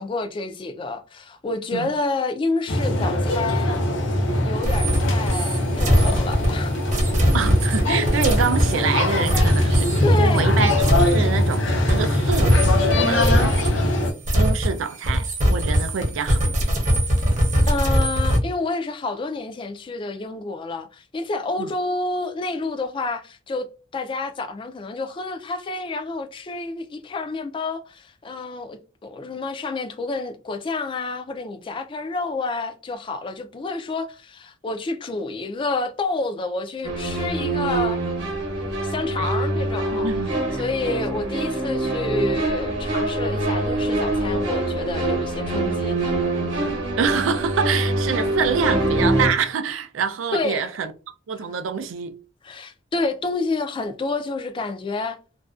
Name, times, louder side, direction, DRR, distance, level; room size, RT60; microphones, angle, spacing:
voice 1, 0.0-3.8 4.4-6.7 9.6-9.8 10.0-10.5 17.7-23.7 23.9-38.0 38.5-40.1 40.6-46.1 50.3-50.7 52.4-55.2, left 3 dB, 25° left, 0.3 m, -29 dB
sound 1, 2.7-14.1, left 1 dB, 70° left, 0.6 m, -21 dB
sound 2, 4.6-11.6 11.9-18.4, equal, 40° right, 0.7 m, -22 dB
voice 2, 7.3-13.3 14.3-16.7 21.6-21.7 39.2-39.3 39.9-40.6 47.0-50.9 51.3-52.2, right 6 dB, 90° right, 0.4 m, -26 dB
sound 3, 36.8-49.3, right 2 dB, 65° right, 0.9 m, -24 dB
2.5 x 2.1 x 2.3 m
head